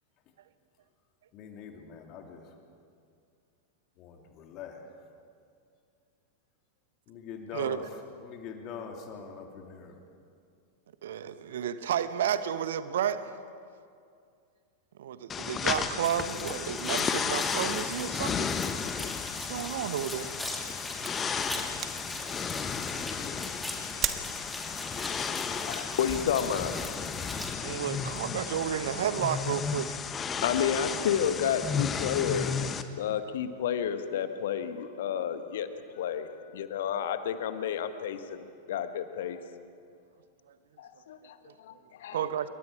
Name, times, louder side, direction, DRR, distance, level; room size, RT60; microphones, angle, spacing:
voice 1, 1.3-2.5 4.0-4.8 7.1-7.8 8.2-10.0, left 6 dB, 40° left, 3 dB, 3.0 m, -43 dB
voice 2, 11.0-13.3 15.0-18.5 19.4-20.4 27.6-30.0 40.5-40.6 41.5-41.6 42.1-42.5, right 9 dB, 60° right, 13 dB, 1.1 m, -32 dB
sound 1, 15.3-32.8, left 6 dB, 20° left, 1.2 m, -33 dB
sound 2, 16.0-27.5, left 1 dB, ahead, 2.8 m, -42 dB
sound 3, 19.5-20.0 20.5-20.6 20.9-21.1 21.5-22.3 22.9-23.1 23.4-23.7 23.9-24.2, right 10 dB, 30° right, 1.4 m, -35 dB
voice 3, 25.6-26.9 30.4-32.5 33.0-39.4 40.8-42.2, left 8 dB, 55° left, 10 dB, 1.3 m, -31 dB
27.5 x 23.0 x 5.0 m, 2.3 s
figure-of-eight pair, 90°, 0 cm